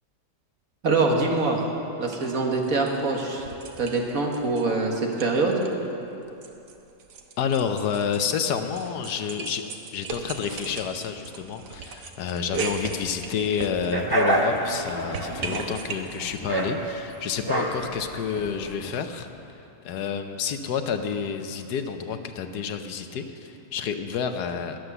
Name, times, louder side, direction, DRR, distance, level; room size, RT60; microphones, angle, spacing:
voice 1, 0.8-1.6 2.0-3.4 3.8-5.6, right 3 dB, 60° right, 0 dB, 2.0 m, -24 dB
sound 1, 2.1-2.3 2.6-4.7 4.9-5.7 6.0-14.2 14.6-16.4, right 4 dB, 85° right, 1.6 m, -37 dB
voice 2, 7.4-9.6 9.9-19.3 19.8-24.8, left 7 dB, 80° left, 7 dB, 1.4 m, -29 dB
sound 2, 13.9-19.0, right 1 dB, 15° right, 1.0 m, -27 dB
21.0 x 7.9 x 6.9 m, 2.9 s
omnidirectional pair, 1.7 m